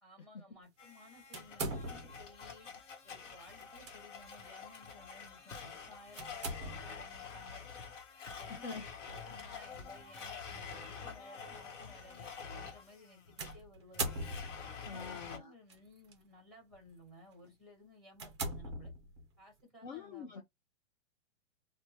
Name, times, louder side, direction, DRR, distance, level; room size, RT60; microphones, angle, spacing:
voice 1, 0.0-2.7 3.0-7.8 8.3-14.2 14.7-18.9 19.4-20.4, left 1 dB, ahead, 1.0 m, -58 dB
Domestic sounds home sounds, 0.8-15.4, left 6 dB, 70° left, 1.0 m, -48 dB
sound 1, 1.3-2.3 3.6-3.9 4.4-4.5 6.2-7.1 9.1-9.4 10.3-10.4 13.4-14.8 15.7-16.1 16.7-16.9 17.4-17.5 18.1-19.4, right 2 dB, 25° right, 0.4 m, -41 dB
voice 2, 8.5-8.8 14.8-15.5 19.8-20.4, left 5 dB, 40° left, 0.4 m, -44 dB
3.2 x 2.1 x 2.8 m
hypercardioid pair, 165°, 38 cm